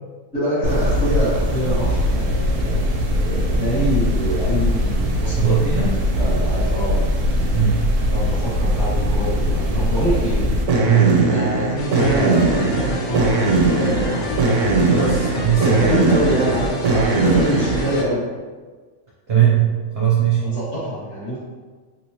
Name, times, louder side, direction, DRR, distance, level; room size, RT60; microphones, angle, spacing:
voice 1, 0.3-5.8 6.2-7.0 8.1-10.5 11.2-14.4 15.6-18.2 20.4-21.4, equal, 50° left, -9 dB, 1.5 m, -25 dB
sound 1, 0.6-18.0, right 1 dB, 85° right, 1.1 m, -20 dB
voice 2, 5.4-6.0 7.5-8.0 10.8-11.3 14.9-16.0 19.3-20.6, right 8 dB, 60° right, -5 dB, 0.6 m, -19 dB
sound 2, 11.8-18.0, left 1 dB, 65° left, 0.7 m, -29 dB
3.3 x 3.0 x 2.7 m, 1.4 s
omnidirectional pair, 1.6 m